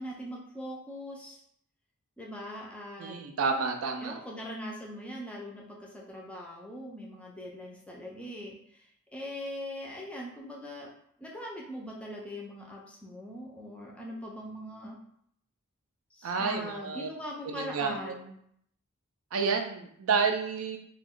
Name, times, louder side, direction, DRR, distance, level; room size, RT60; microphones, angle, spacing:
voice 1, 0.0-1.4 2.2-3.2 4.0-10.9 11.2-15.0 16.1-18.4, equal, 5° left, -2 dB, 0.4 m, -41 dB
voice 2, 3.0-4.2 16.2-17.1 17.5-18.1 19.3-20.8, right 5 dB, 70° right, 5 dB, 0.4 m, -30 dB
2.4 x 2.2 x 3.5 m, 0.69 s
head